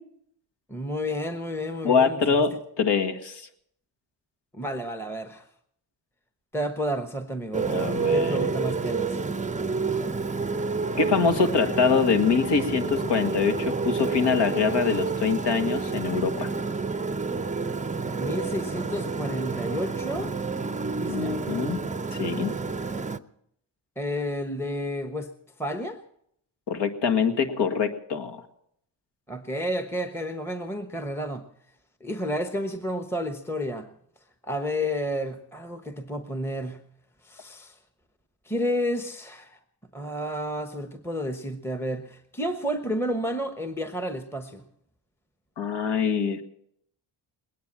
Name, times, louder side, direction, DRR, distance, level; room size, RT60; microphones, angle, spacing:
voice 1, 0.7-2.5 4.5-5.4 6.5-7.7 8.1-9.2 18.1-20.3 20.9-21.4 24.0-25.3 25.6-26.0 29.3-31.4 32.0-33.9 34.4-36.8 37.2-37.8 38.4-39.6 39.9-44.6, equal, 5° left, 8 dB, 1.1 m, -31 dB
voice 2, 1.8-3.5 7.6-8.5 11.0-16.5 21.1-21.8 22.1-22.5 26.7-28.4 45.6-46.4, left 5 dB, 60° left, 7 dB, 1.9 m, -24 dB
Motorcycle, 7.5-23.2, right 4 dB, 15° right, 0.7 m, -29 dB
20.5 x 9.4 x 7.4 m, 0.73 s
supercardioid pair, 65°, 47 cm